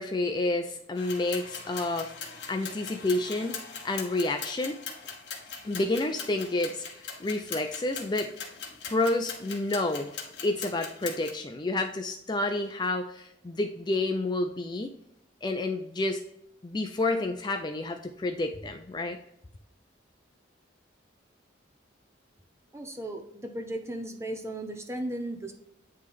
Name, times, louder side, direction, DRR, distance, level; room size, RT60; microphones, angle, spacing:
voice 1, 0.0-4.8 5.6-8.5 8.9-10.1 10.4-14.9 15.4-16.2 16.6-19.2, left 2 dB, 25° left, 5 dB, 0.4 m, -30 dB
sound 1, 1.0-11.3, left 6 dB, 60° left, 1.4 m, -41 dB
voice 2, 22.7-25.5, right 1 dB, 15° right, 5 dB, 0.7 m, -36 dB
9.4 x 3.2 x 3.5 m, 0.77 s
head